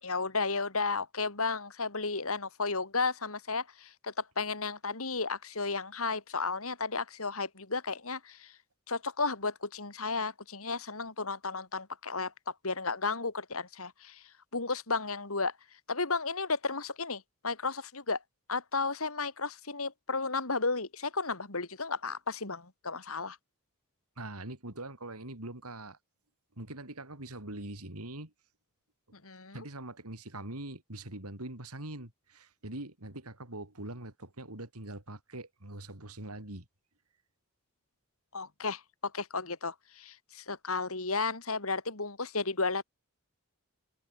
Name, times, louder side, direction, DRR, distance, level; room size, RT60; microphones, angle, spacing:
voice 1, 0.0-8.5 8.9-12.3 12.6-14.2 14.5-15.5 15.9-18.2 18.5-23.4 29.1-29.6 38.3-42.8, left 4 dB, 65° left, 3.2 m, -33 dB
voice 2, 24.2-26.0 26.6-28.3 29.5-36.6, right 1 dB, 85° right, 4.8 m, -43 dB
open air
head